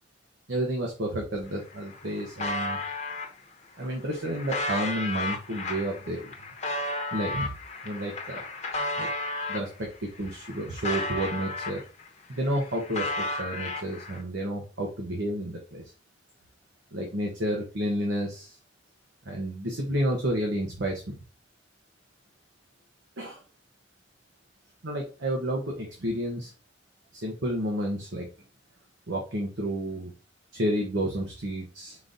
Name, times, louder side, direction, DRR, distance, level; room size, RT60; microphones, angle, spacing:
voice 1, 0.5-2.8 3.8-6.3 7.1-7.5 7.8-8.4 9.0-9.1 9.5-9.9 10.2-11.8 12.3-15.8 16.9-18.6 19.2-21.1 23.2-23.4 24.8-26.5 27.1-28.3 29.1-30.1 30.5-32.0, right 1 dB, 90° right, 0 dB, 1.0 m, -30 dB
sound 1, 1.4-1.5 1.7-3.3 3.9-9.7 10.1-12.1 12.4-14.2, left 2 dB, 40° left, 0.8 m, -33 dB
5.2 x 3.9 x 2.6 m, 0.34 s
head